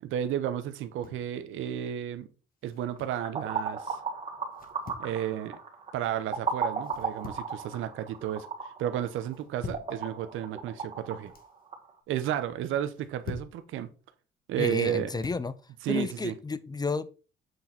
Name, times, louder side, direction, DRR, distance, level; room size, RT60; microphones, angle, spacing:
voice 1, 0.0-2.3 2.6-4.0 5.0-5.6 5.9-11.3 12.1-13.9 14.5-15.1 15.8-16.4, right 11 dB, 85° right, 0.8 m, -32 dB
sound 1, 0.7-1.3 2.6-3.3 4.5-5.1 6.8-7.6 8.0-8.4 9.3-10.0 11.0-11.5 12.8-13.6 14.7-15.5, left 4 dB, 45° left, 1.4 m, -44 dB
sound 2, 3.0-11.9, right 5 dB, 35° right, 1.9 m, -36 dB
voice 2, 14.6-15.5 15.9-17.1, left 4 dB, 20° left, 0.5 m, -31 dB
8.0 x 4.0 x 4.3 m
cardioid pair, 90°, 20 cm